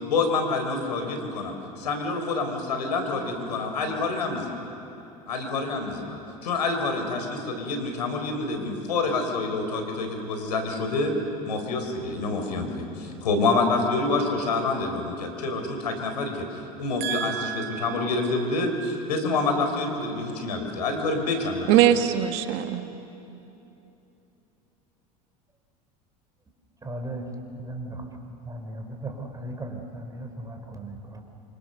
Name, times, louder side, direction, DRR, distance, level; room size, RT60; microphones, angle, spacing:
voice 1, 0.1-4.6 5.3-11.1 11.5-16.4 16.8-21.7, left 3 dB, 85° left, 5 dB, 4.3 m, -27 dB
voice 2, 17.0-18.0 21.7-22.9, right 11 dB, 60° right, 8 dB, 1.6 m, -23 dB
voice 3, 26.8-27.3 27.5-28.0 28.5-31.2, right 1 dB, 15° right, 4 dB, 4.7 m, -36 dB
27.5 x 25.5 x 6.9 m, 2.9 s
hypercardioid pair, 85°, 21 cm